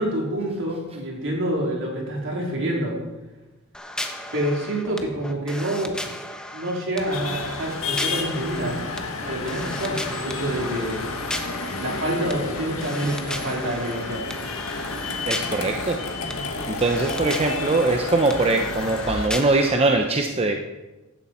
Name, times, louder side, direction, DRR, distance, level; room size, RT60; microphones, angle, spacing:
voice 1, 0.0-3.0 4.3-5.9 6.5-8.8 9.2-11.1 11.8-14.3, right 1 dB, 65° right, -1 dB, 3.6 m, -27 dB
sound 1, 3.7-19.9, left 1 dB, 5° left, 1.0 m, -36 dB
sound 2, 7.1-19.3, left 3 dB, 85° left, 1.7 m, -31 dB
voice 2, 15.3-16.0 16.7-20.6, right 2 dB, 30° right, 4 dB, 0.8 m, -22 dB
15.5 x 11.5 x 4.4 m, 1.1 s
head